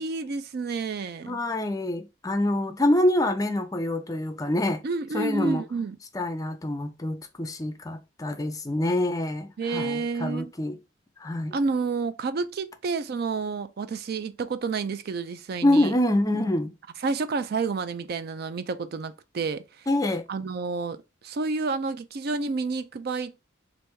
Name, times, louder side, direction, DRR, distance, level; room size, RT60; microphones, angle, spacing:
voice 1, 0.0-1.4 4.8-6.0 9.6-10.5 11.5-15.9 17.0-19.9 20.3-23.5, right 4 dB, 55° right, 0.4 m, -30 dB
voice 2, 1.2-4.8 5.1-5.6 6.1-10.8 11.2-11.5 15.6-16.7 19.9-20.3, left 1 dB, 20° left, 0.5 m, -26 dB
3.3 x 2.6 x 4.5 m
head